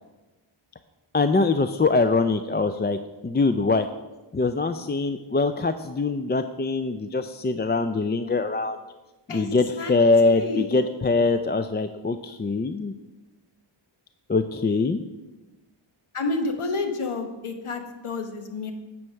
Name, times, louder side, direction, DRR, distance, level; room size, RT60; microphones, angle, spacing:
voice 1, 1.1-3.9 4.3-8.8 9.3-12.9 14.3-15.0, left 3 dB, 25° left, 9 dB, 0.3 m, -23 dB
voice 2, 10.2-10.7 16.1-18.7, left 3 dB, 90° left, 5 dB, 1.1 m, -29 dB
9.6 x 4.6 x 6.2 m, 1.1 s
wide cardioid pair, 50°, 49 cm